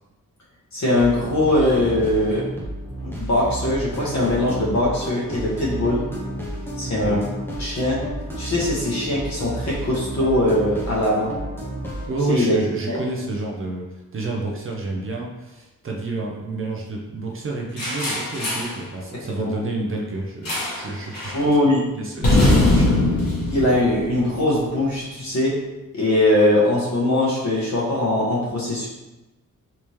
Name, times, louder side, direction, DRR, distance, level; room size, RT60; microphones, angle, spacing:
voice 1, 0.7-2.5 3.0-6.0 6.8-7.2 7.6-8.0 8.4-11.3 12.3-12.6 12.9-13.0 19.4-19.5 21.3-21.8 23.5-25.5 25.9-28.9, left 1 dB, 55° left, -5 dB, 1.1 m, -21 dB
sound 1, 0.9-12.1, right 1 dB, 5° left, 0.6 m, -31 dB
voice 2, 12.1-13.9 14.1-21.3 21.9-23.0, right 2 dB, 40° right, -1 dB, 0.4 m, -29 dB
sound 2, 17.8-18.8 20.5-20.9 21.1-21.4 22.2-24.6, left 2 dB, 75° left, 1.3 m, -21 dB
3.4 x 2.8 x 3.1 m, 1.1 s
wide cardioid pair, 175°, 34 cm